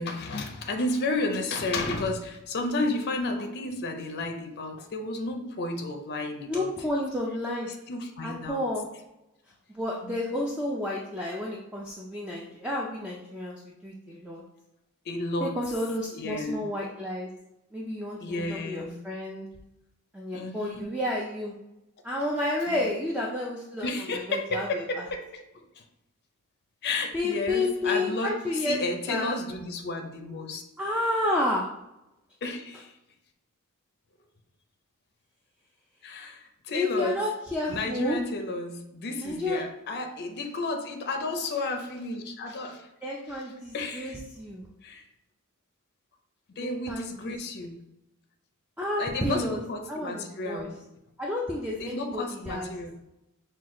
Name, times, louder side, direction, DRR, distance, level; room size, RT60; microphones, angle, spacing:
voice 1, 0.0-6.7 7.7-8.6 10.0-10.2 15.1-15.5 16.1-16.7 18.2-19.0 20.3-20.9 22.7-22.9 23.8-25.8 26.8-30.6 32.4-32.9 36.0-37.2 37.7-42.9 43.3-43.4 43.7-44.2 44.8-45.0 46.6-47.8 49.0-50.8 51.8-53.0, left 2 dB, 50° left, 5 dB, 0.5 m, -32 dB
voice 2, 6.5-7.7 8.2-8.9 9.7-14.4 15.4-17.3 17.7-19.5 20.1-21.5 22.0-25.1 27.1-29.3 30.8-31.7 36.7-38.2 39.2-39.6 43.0-44.6 46.6-47.5 48.8-50.7 51.2-52.7, left 1 dB, 5° right, -3 dB, 0.4 m, -31 dB
6.0 x 2.3 x 3.7 m, 0.90 s
head